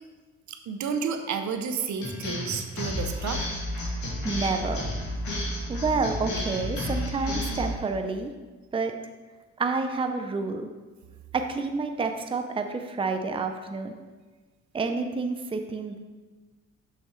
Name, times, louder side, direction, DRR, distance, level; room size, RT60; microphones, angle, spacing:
voice 1, 0.5-3.4, right 6 dB, 70° right, 6 dB, 0.7 m, -31 dB
sound 1, 2.0-7.8, left 1 dB, 70° left, 2.2 m, -31 dB
voice 2, 3.9-4.8 5.7-8.3 8.7-8.9 9.6-10.7 11.3-13.9 14.7-16.0, right 4 dB, 20° right, 6 dB, 0.5 m, -29 dB
6.7 x 6.1 x 3.2 m, 1.3 s
cardioid pair, 90°, 30 cm